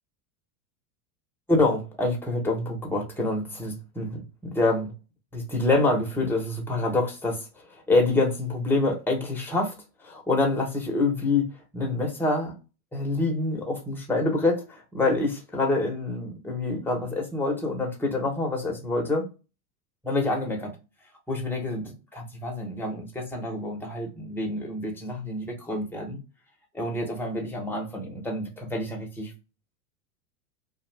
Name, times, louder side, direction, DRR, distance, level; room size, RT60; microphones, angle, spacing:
voice 1, 1.5-4.9 5.3-9.7 10.0-11.5 11.7-12.5 12.9-19.3 20.0-20.7 21.3-21.9 22.4-26.2 26.7-29.3, left 2 dB, 5° left, 0.9 m, -27 dB
2.5 x 2.4 x 3.3 m
hypercardioid pair, 110°, 49 cm